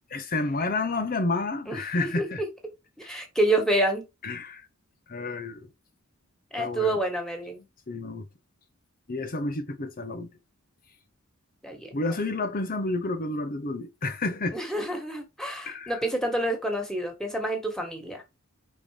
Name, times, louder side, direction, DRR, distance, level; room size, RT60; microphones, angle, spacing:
voice 1, 0.1-2.4 4.2-4.7 5.1-5.7 6.6-7.0 7.9-8.3 9.1-10.3 11.9-14.6 15.6-16.0, left 2 dB, 40° left, 0.9 m, -30 dB
voice 2, 1.7-2.5 3.0-4.0 6.5-7.6 11.6-12.0 14.5-18.2, right 1 dB, 5° left, 1.9 m, -28 dB
5.4 x 4.4 x 5.0 m
head